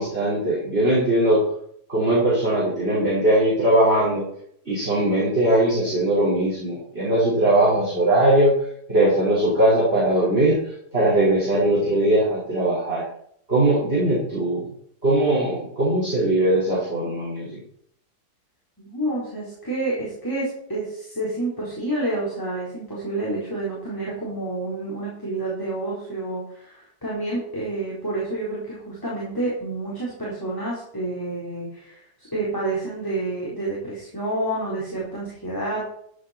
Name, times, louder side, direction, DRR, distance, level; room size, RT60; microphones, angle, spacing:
voice 1, 0.0-1.4 1.9-4.2 4.7-8.5 8.9-10.6 10.9-13.0 13.5-14.6 15.0-17.6, right 1 dB, 35° right, -10 dB, 5.5 m, -20 dB
voice 2, 18.8-35.8, right 2 dB, 10° left, -7 dB, 4.6 m, -29 dB
15.0 x 8.8 x 4.5 m, 0.68 s
omnidirectional pair, 1.8 m